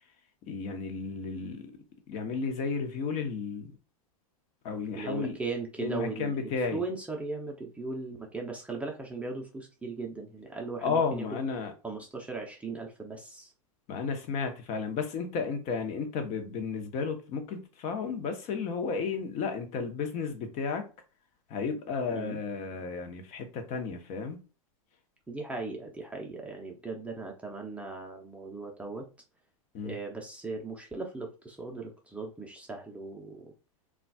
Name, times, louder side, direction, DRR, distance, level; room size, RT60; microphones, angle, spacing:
voice 1, 0.5-1.7 2.1-3.7 4.6-5.4 5.8-6.8 10.8-11.7 13.9-20.9 21.5-24.4 29.7-30.0, left 5 dB, 40° left, 0.9 m, -33 dB
voice 2, 5.0-11.4 11.8-13.5 22.1-22.4 25.3-29.1 29.8-33.5, right 3 dB, 5° right, 0.6 m, -38 dB
3.9 x 2.4 x 2.3 m
hypercardioid pair, 115°, 18 cm